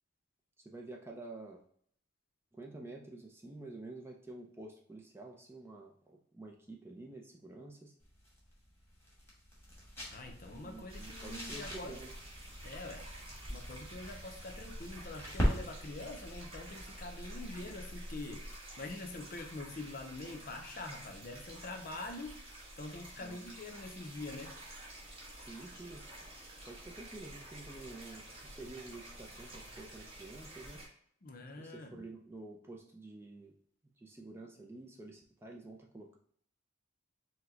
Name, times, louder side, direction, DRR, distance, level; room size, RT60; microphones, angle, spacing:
voice 1, 0.6-1.6 2.5-7.9 10.5-12.2 23.2-23.5 25.5-26.1 26.6-30.8 31.6-33.5 34.0-36.2, right 2 dB, 10° right, 0 dB, 0.4 m, -49 dB
sound 1, 8.0-18.7, equal, 10° left, 1.2 m, -41 dB
voice 2, 10.1-12.0 12.6-13.1 13.5-18.4 18.8-22.4 22.8-24.5 31.2-32.0, left 2 dB, 45° left, 4 dB, 0.6 m, -45 dB
sound 2, 10.9-30.9, right 1 dB, 25° right, 1.2 m, -50 dB
4.7 x 2.2 x 3.7 m, 0.63 s
head